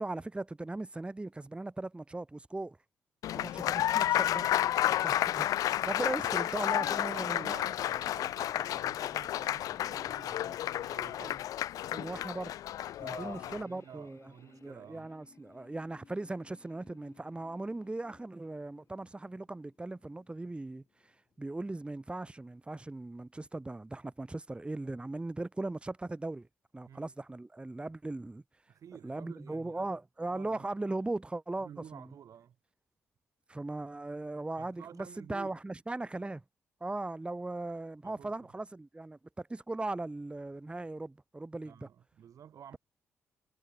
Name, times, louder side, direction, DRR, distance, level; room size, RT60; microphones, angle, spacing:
voice 1, 0.0-2.8 3.3-7.5 11.9-12.5 13.0-20.8 21.4-26.5 26.7-28.4 29.0-32.1 33.5-36.4 36.8-41.9, right 2 dB, 15° right, 1.1 m, -38 dB
Applause, 3.2-13.6, left 12 dB, 70° left, 0.4 m, -31 dB
voice 2, 6.8-11.5 13.0-15.1 26.9-27.1 28.7-29.9 30.3-30.7 31.6-32.6 34.6-35.5 38.0-38.3 41.6-42.8, right 9 dB, 65° right, 1.5 m, -51 dB
sound 1, 11.8-22.8, left 6 dB, 50° left, 3.5 m, -64 dB
supercardioid pair, 55°, 6 cm